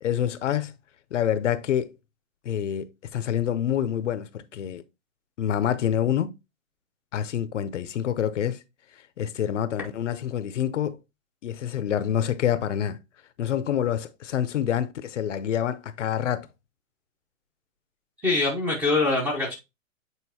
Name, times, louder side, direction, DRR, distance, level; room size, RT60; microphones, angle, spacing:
voice 1, 0.0-0.7 1.1-1.9 2.5-2.9 3.1-4.8 5.4-6.3 7.1-8.6 9.2-11.0 11.4-13.0 13.4-16.5, left 9 dB, 60° left, 0.7 m, -27 dB
voice 2, 18.2-19.6, left 3 dB, 5° right, 0.7 m, -23 dB
8.2 x 4.1 x 2.8 m
hypercardioid pair, 155°, 41 cm